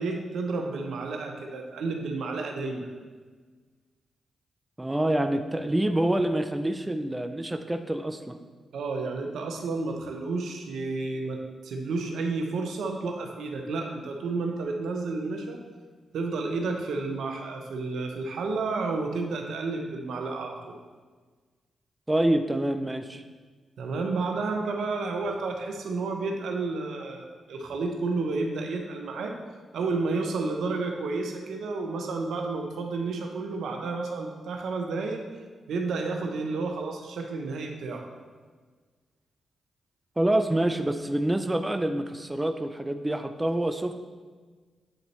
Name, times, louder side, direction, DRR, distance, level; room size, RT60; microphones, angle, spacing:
voice 1, 0.0-2.9 8.7-15.6 16.1-20.8 23.8-29.4 29.7-35.2 35.7-38.1, right 3 dB, 75° right, 3 dB, 0.8 m, -31 dB
voice 2, 4.8-8.4 22.1-23.2 40.2-43.9, right 1 dB, 15° right, 7 dB, 0.5 m, -26 dB
8.0 x 3.9 x 4.3 m, 1.5 s
supercardioid pair, 45°, 0 cm